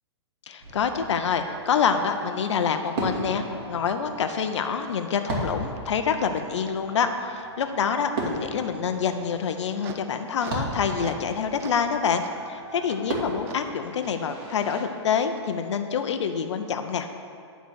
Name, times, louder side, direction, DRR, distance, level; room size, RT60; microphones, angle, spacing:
voice 1, 0.5-17.1, left 6 dB, 75° left, 7 dB, 0.6 m, -26 dB
Fireworks, 0.6-14.8, right 2 dB, 55° right, 2.3 m, -37 dB
sound 1, 9.4-11.3 11.6-11.9 12.2-12.3 12.9-13.0 13.5-13.6 14.0-14.2 14.7-14.8 15.3-15.4, right 6 dB, 15° right, 0.3 m, -43 dB
11.5 x 4.0 x 6.3 m, 2.4 s
hypercardioid pair, 155°, 15 cm